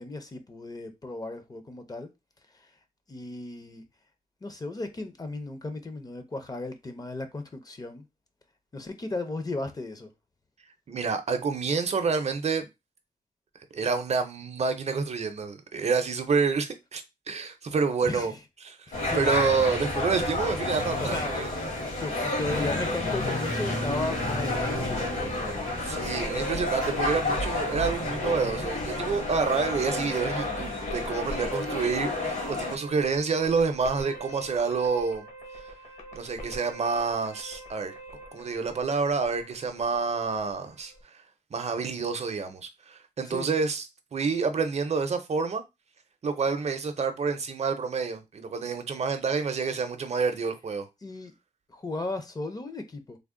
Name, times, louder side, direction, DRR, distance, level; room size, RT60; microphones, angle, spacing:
voice 1, 0.0-2.1 2.5-2.7 3.1-3.8 4.4-8.0 8.7-10.1 18.0-18.4 18.9-19.3 21.0-21.3 22.0-25.7 43.3-43.5 51.0-51.3 51.7-53.2, left 2 dB, 25° left, 0.5 m, -35 dB
voice 2, 10.9-12.7 13.7-18.3 18.6-18.8 19.1-21.5 25.8-35.3 35.5-35.6 36.1-37.9 38.3-40.9 41.5-43.8 44.1-45.6 46.2-50.9, right 5 dB, 50° right, 0.6 m, -28 dB
sound 1, 18.9-32.7, left 2 dB, 75° left, 2.0 m, -30 dB
sound 2, 23.9-41.0, right 1 dB, 55° left, 1.0 m, -45 dB
3.4 x 2.1 x 3.6 m
wide cardioid pair, 140°, 14 cm